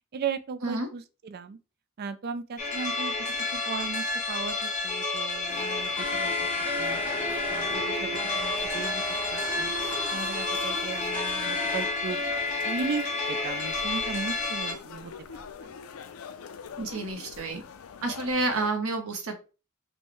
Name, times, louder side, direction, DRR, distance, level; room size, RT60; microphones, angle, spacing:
voice 1, 0.1-1.6 2.0-6.5 6.8-7.0 7.5-8.1 8.3-9.0 9.3-9.7 10.1-12.2 12.6-15.7, right 5 dB, 45° right, 0.3 m, -36 dB
sound 1, 2.6-14.7, left 3 dB, 35° left, 0.8 m, -30 dB
sound 2, 5.5-18.7, left 6 dB, 85° left, 0.4 m, -45 dB
sound 3, 6.0-11.9, left 1 dB, 5° left, 0.9 m, -36 dB
voice 2, 16.8-17.6 18.0-19.3, right 3 dB, 85° right, 0.9 m, -29 dB
5.3 x 2.2 x 3.0 m
head